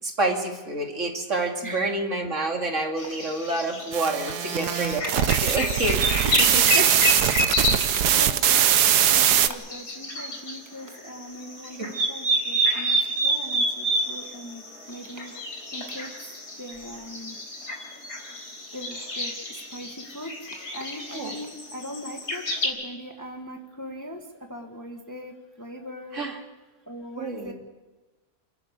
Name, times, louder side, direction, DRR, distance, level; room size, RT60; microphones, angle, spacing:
voice 1, 0.0-6.1 6.4-6.7 11.8-11.9 21.1-21.4 26.1-26.4 27.2-27.5, right 2 dB, 50° right, 2 dB, 2.6 m, -28 dB
voice 2, 1.6-2.0 6.2-6.9 7.3-13.0 13.2-15.3 15.7-16.1 16.6-17.4 18.7-20.3 20.7-24.2 24.5-26.3 26.9-27.5, equal, 10° left, 3 dB, 1.5 m, -38 dB
sound 1, 3.0-10.6 10.9-22.7, equal, 80° left, 4.6 m, -29 dB
sound 2, 3.9-9.5, right 10 dB, 80° right, 1.4 m, -21 dB
28.5 x 11.5 x 8.3 m, 1.2 s
omnidirectional pair, 1.7 m